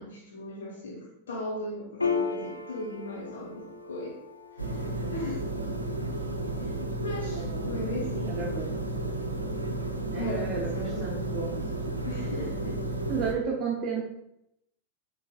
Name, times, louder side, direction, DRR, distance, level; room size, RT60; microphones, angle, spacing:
voice 1, 0.0-4.2 4.5-5.4 6.6-6.7 7.0-8.6 10.1-11.2 12.1-12.8, left 1 dB, 65° left, -4 dB, 0.9 m, -37 dB
Piano, 2.0-8.9, left 5 dB, 80° left, 0.4 m, -37 dB
sound 1, 4.6-13.3, right 2 dB, 85° right, 0.4 m, -32 dB
voice 2, 7.3-7.9 8.2-8.7 10.0-11.6 13.1-14.1, right 5 dB, 30° right, -3 dB, 0.7 m, -33 dB
4.6 x 4.0 x 2.3 m, 0.82 s
figure-of-eight pair, 90°, 0 cm